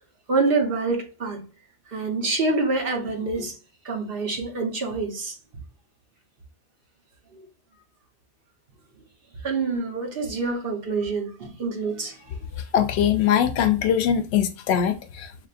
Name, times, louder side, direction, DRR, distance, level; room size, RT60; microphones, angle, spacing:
voice 1, 0.3-1.4 1.9-3.5 3.8-5.4 7.3-7.4 9.4-12.3, right 3 dB, 60° right, 1.2 m, -26 dB
voice 2, 12.6-15.5, left 9 dB, 80° left, 0.8 m, -22 dB
6.6 x 2.5 x 2.5 m
omnidirectional pair, 1.1 m